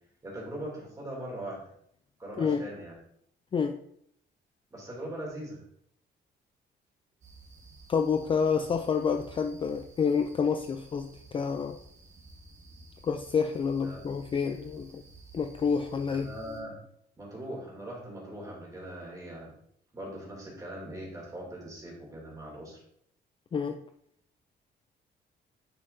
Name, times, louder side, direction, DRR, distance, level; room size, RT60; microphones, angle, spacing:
voice 1, 0.2-1.6 2.2-2.9 4.7-5.6 13.8-14.1 16.1-16.8 17.2-19.5 19.9-22.8, right 1 dB, 20° right, -3 dB, 2.8 m, -40 dB
sound 1, 7.2-16.6, right 3 dB, 40° right, 1.4 m, -53 dB
voice 2, 7.9-11.8 13.0-15.0 15.3-16.3 23.5-23.8, left 6 dB, 30° left, 6 dB, 0.4 m, -28 dB
9.9 x 5.7 x 2.7 m, 0.67 s
cardioid pair, 165°, 19 cm